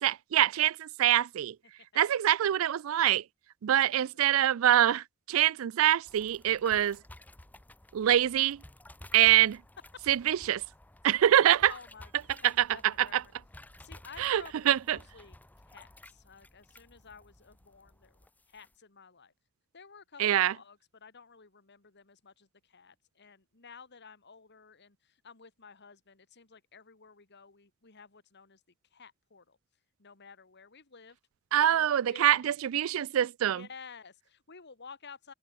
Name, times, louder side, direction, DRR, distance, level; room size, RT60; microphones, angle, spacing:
voice 1, 0.0-1.6 2.0-3.2 3.6-7.0 7.9-8.6 9.1-9.6 10.1-10.6 11.0-11.7 12.4-12.7 13.0-13.2 14.2-15.0 20.2-20.5 31.5-33.7, right 11 dB, 70° right, 0.4 m, -25 dB
voice 2, 3.8-4.1 11.4-13.3 13.8-15.4 15.6-19.3 19.7-28.6 28.9-29.6 30.0-31.2 31.5-32.6 33.5-35.3, left 5 dB, 55° left, 2.3 m, -53 dB
sound 1, 6.1-18.7, left 1 dB, 10° left, 0.6 m, -54 dB
head